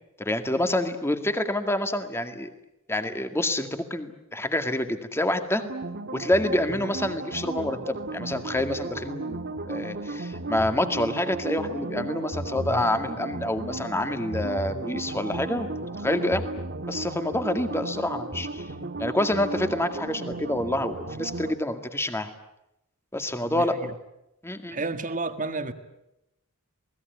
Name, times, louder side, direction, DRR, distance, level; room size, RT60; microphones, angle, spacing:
voice 1, 0.2-2.5 2.9-5.6 6.1-16.4 16.9-18.6 19.0-22.3 23.1-23.8 24.4-24.9, left 1 dB, 10° left, 2.0 m, -27 dB
sound 1, 5.6-21.5, right 2 dB, 50° right, 1.6 m, -35 dB
voice 2, 23.5-23.9 24.7-25.7, right 3 dB, 35° right, 1.8 m, -31 dB
28.5 x 20.0 x 9.4 m
head